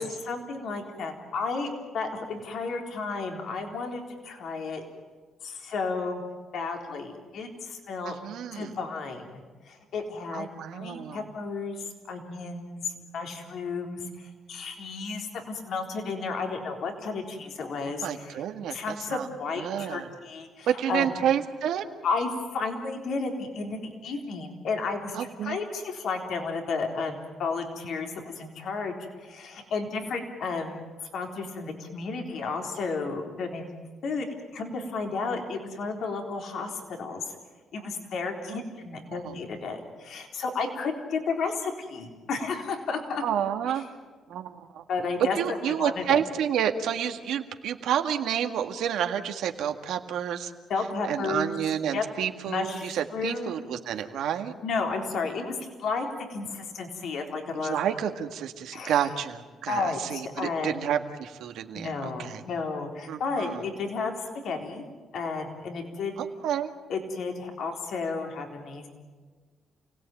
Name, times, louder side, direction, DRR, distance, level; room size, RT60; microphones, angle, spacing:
voice 1, 0.0-4.8 5.4-6.2 6.5-8.2 8.5-10.5 10.7-12.8 13.1-18.4 18.7-21.1 22.0-28.9 29.2-30.8 31.1-33.6 34.0-34.3 34.5-37.2 37.7-43.2 44.9-46.2 50.7-51.5 51.9-52.0 52.5-53.6 54.6-57.8 58.7-58.9 59.7-60.8 61.7-64.2 64.4-64.8 65.1-66.1 66.9-68.9, left 4 dB, 70° left, 3 dB, 3.8 m, -32 dB
voice 2, 8.0-8.7 10.3-11.2 18.0-19.3 19.6-20.1 20.7-21.9 25.1-25.6 38.5-38.6 39.1-39.4 43.2-43.9 44.3-44.8 45.3-50.5 51.0-54.5 57.5-62.4 63.1-63.7 66.2-66.7, right 9 dB, 80° right, 6 dB, 1.8 m, -30 dB
29.0 x 17.5 x 9.2 m, 1.4 s
cardioid pair, 90°, 0 cm